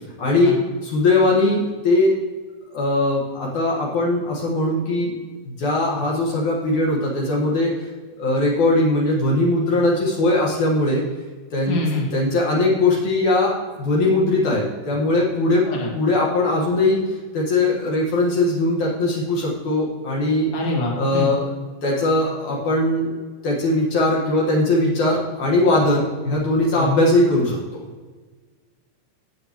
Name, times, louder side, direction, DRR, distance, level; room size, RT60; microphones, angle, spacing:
voice 1, 0.2-2.1 2.7-5.1 5.5-7.7 8.2-11.0 11.5-11.8 12.1-15.6 15.9-17.0 17.3-20.5 20.9-21.5 21.8-23.2 23.4-27.6, left 2 dB, 65° left, -3 dB, 2.8 m, -20 dB
voice 2, 11.7-12.0 15.7-15.9 20.5-21.3 26.7-26.9, left 1 dB, 40° left, -2 dB, 2.8 m, -25 dB
14.5 x 8.5 x 3.0 m, 1.4 s
omnidirectional pair, 3.8 m